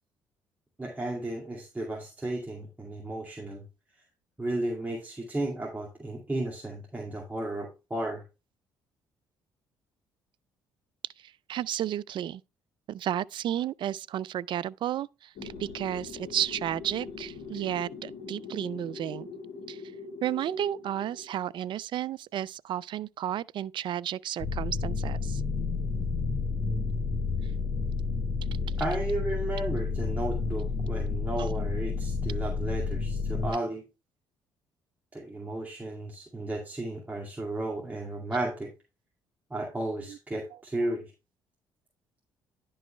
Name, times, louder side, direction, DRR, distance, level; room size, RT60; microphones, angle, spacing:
voice 1, 0.8-3.6 4.4-8.2 28.8-33.8 35.1-38.7 39.5-41.0, right 1 dB, 15° right, 2.3 m, -34 dB
voice 2, 11.5-12.4 12.9-19.3 19.7-19.8 20.2-25.4 31.4-31.5 40.1-40.2, right 11 dB, 55° right, 0.4 m, -32 dB
sound 1, 15.4-21.3, left 4 dB, 70° left, 2.1 m, -42 dB
sound 2, 24.4-33.5, left 4 dB, 40° left, 1.0 m, -30 dB
10.5 x 5.4 x 3.2 m
hypercardioid pair, 55°, 10 cm